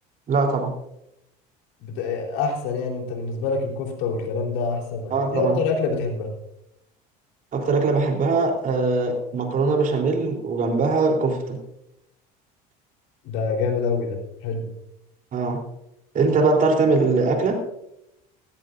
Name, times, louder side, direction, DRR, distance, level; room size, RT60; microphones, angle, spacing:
voice 1, 0.3-0.7 5.1-5.6 7.5-11.6 15.3-15.6 16.1-17.6, right 3 dB, 45° right, 2 dB, 3.6 m, -21 dB
voice 2, 1.8-6.3 13.2-14.7, left 4 dB, 75° left, 2 dB, 3.9 m, -26 dB
17.0 x 16.0 x 2.6 m, 0.82 s
supercardioid pair, 90°, 20 cm